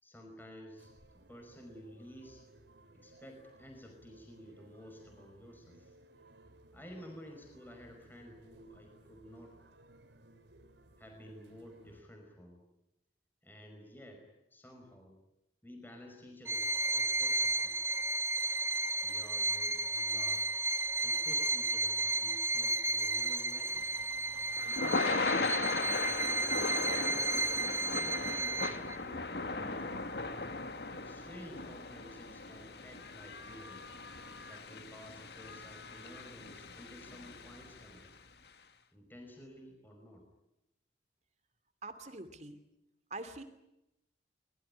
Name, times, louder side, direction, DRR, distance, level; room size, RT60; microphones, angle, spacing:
voice 1, 0.0-2.4 2.9-5.9 6.7-9.6 11.0-12.7 13.4-14.3 14.5-15.2 15.6-17.8 19.0-20.5 21.0-23.9 24.6-30.0 30.9-33.8 34.3-38.1 38.9-40.3, equal, 10° left, 3 dB, 5.2 m, -52 dB
sound 1, 0.8-12.0, right 1 dB, 85° right, 3.4 m, -60 dB
Bowed string instrument, 16.5-29.0, right 2 dB, 15° right, 1.0 m, -33 dB
Thunder / Rain, 23.8-38.0, left 3 dB, 65° left, 1.9 m, -38 dB
voice 2, 41.8-42.6 43.1-43.4, right 2 dB, 40° right, 10 dB, 2.7 m, -44 dB
24.5 x 21.5 x 9.9 m, 0.89 s
head